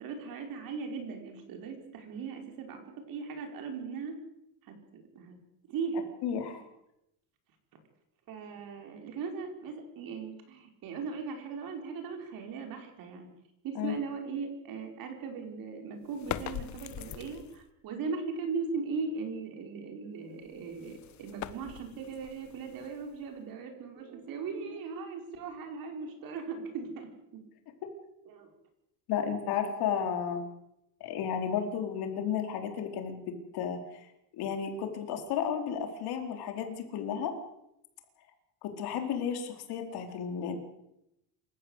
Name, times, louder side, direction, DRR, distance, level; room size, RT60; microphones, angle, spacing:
voice 1, 0.0-4.2 4.6-5.4 5.7-6.0 8.3-13.3 13.6-27.4 28.3-28.5, right 5 dB, 55° right, 4 dB, 5.3 m, -38 dB
voice 2, 6.2-6.6 13.7-14.0 29.1-30.4 31.0-34.1 34.3-37.3 38.6-40.6, left 8 dB, 65° left, 5 dB, 4.3 m, -33 dB
sound 1, 16.1-17.7 20.4-23.4, left 11 dB, 40° left, 1.3 m, -42 dB
27.5 x 14.5 x 8.3 m, 0.84 s
cardioid pair, 170°, 42 cm